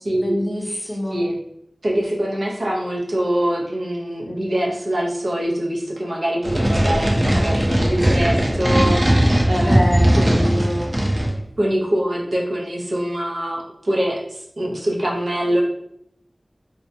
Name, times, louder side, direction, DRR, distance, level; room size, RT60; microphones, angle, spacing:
voice 1, 0.1-1.2 9.6-10.9, equal, 15° left, -3 dB, 0.6 m, -25 dB
voice 2, 1.8-9.8 10.2-10.4 11.6-15.6, right 1 dB, 85° right, -2 dB, 0.6 m, -24 dB
sound 1, 6.4-11.4, right 1 dB, 30° right, 0.5 m, -18 dB
2.6 x 2.1 x 2.6 m, 0.74 s
wide cardioid pair, 60°, 0 cm